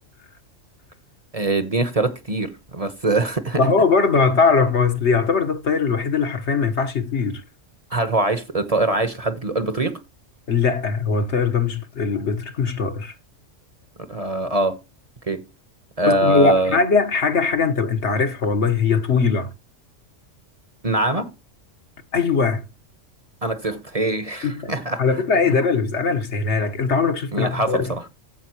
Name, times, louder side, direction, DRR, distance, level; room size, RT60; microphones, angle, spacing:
voice 1, 1.3-3.7 7.9-10.0 14.0-14.8 15.3-15.5 16.0-16.8 20.8-21.3 23.4-25.0 27.3-28.0, right 2 dB, 30° right, 1.1 m, -23 dB
voice 2, 3.6-7.4 10.5-13.1 16.0-19.5 22.1-22.6 24.4-24.7 25.0-28.1, left 5 dB, 65° left, 1.6 m, -20 dB
15.0 x 5.6 x 3.0 m
omnidirectional pair, 1.3 m